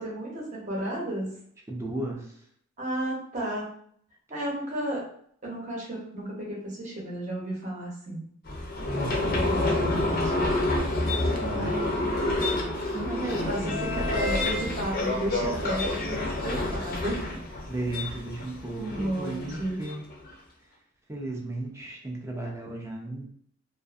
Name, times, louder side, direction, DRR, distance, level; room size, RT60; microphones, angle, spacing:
voice 1, 0.0-1.4 2.8-3.6 4.3-5.0 5.4-8.2 9.3-10.5 11.5-12.1 13.5-17.4 18.8-19.8, right 1 dB, 35° right, -3 dB, 0.9 m, -33 dB
voice 2, 1.7-2.2 8.8-10.2 11.2-11.7 12.9-14.1 14.6-14.8 17.7-20.0 21.1-23.2, right 1 dB, 15° right, 0 dB, 0.5 m, -35 dB
sound 1, 8.5-20.3, left 2 dB, 45° left, 0.5 m, -29 dB
2.5 x 2.5 x 2.4 m, 0.64 s
head